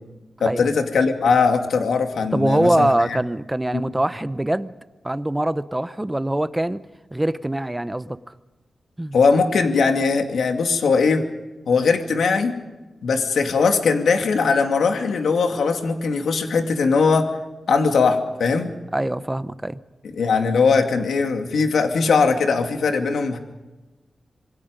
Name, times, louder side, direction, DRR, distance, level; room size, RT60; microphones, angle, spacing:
voice 1, 0.4-3.2 3.7-3.8 9.1-11.2 11.7-12.5 13.0-17.3 17.7-18.7 20.1-23.4, left 4 dB, 80° left, 5 dB, 2.5 m, -20 dB
voice 2, 2.3-4.7 5.0-6.8 7.1-8.2 9.0-9.2 18.9-19.8, right 1 dB, 10° right, 13 dB, 0.7 m, -23 dB
27.0 x 22.5 x 5.2 m, 1.1 s
wide cardioid pair, 135°, 0 cm